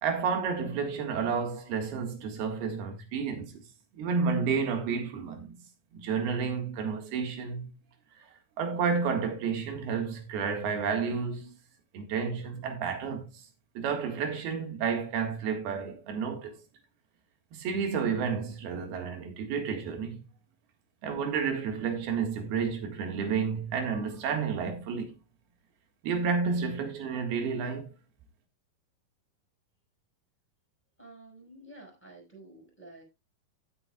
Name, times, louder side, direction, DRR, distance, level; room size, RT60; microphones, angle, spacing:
voice 1, 0.0-3.6 3.9-5.5 5.9-7.7 8.6-11.6 11.9-13.3 13.8-16.6 17.5-20.3 21.0-25.2 26.0-27.9, right 6 dB, 80° right, 3.8 m, -31 dB
voice 2, 31.0-33.0, right 2 dB, 5° left, 5.6 m, -50 dB
16.5 x 7.6 x 2.4 m
omnidirectional pair, 4.4 m